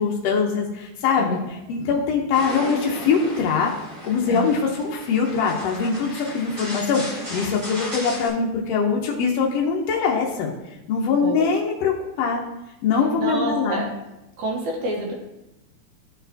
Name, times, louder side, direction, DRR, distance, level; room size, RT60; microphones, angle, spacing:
voice 1, 0.0-3.7 4.0-10.5 10.9-12.4 12.8-13.8, left 5 dB, 75° left, -1 dB, 1.5 m, -22 dB
sound 1, 2.3-8.3, equal, 35° right, 1.7 m, -36 dB
voice 2, 11.2-11.5 13.2-13.8 14.4-15.1, right 2 dB, 75° right, -1 dB, 2.4 m, -28 dB
12.0 x 4.1 x 2.7 m, 0.94 s
omnidirectional pair, 3.5 m